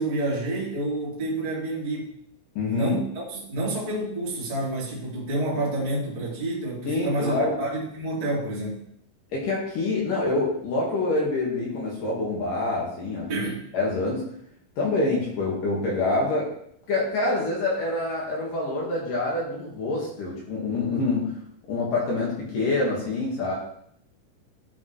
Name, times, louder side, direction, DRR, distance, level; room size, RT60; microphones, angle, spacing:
voice 1, 0.0-2.1 2.6-8.8 13.3-13.6, right 2 dB, 25° right, -6 dB, 0.9 m, -29 dB
voice 2, 2.6-3.0 6.9-7.6 9.3-13.3 13.7-14.3 14.8-16.5 16.9-21.4 21.7-23.5, left 2 dB, 55° left, -4 dB, 2.7 m, -26 dB
12.5 x 5.6 x 3.2 m, 0.69 s
omnidirectional pair, 5.5 m